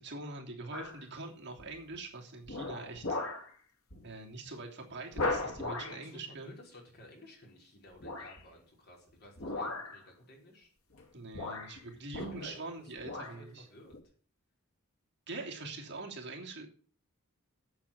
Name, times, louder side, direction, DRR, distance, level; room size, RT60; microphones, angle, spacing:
voice 1, 0.0-3.2 4.0-6.5 11.1-13.7 15.3-16.7, right 3 dB, 55° right, 0 dB, 3.1 m, -44 dB
sound 1, 0.7-1.1 1.6-1.9 2.5-3.5 3.9-4.1 4.4-4.5 5.1-6.0 8.0-8.4 9.4-10.0 10.9-11.0 11.3-12.7 13.0-13.4 13.9-14.0, left 2 dB, 85° left, 2.2 m, -37 dB
voice 2, 5.8-10.7 12.1-14.1, left 1 dB, 50° left, 0 dB, 5.2 m, -54 dB
8.7 x 8.3 x 8.8 m, 0.43 s
head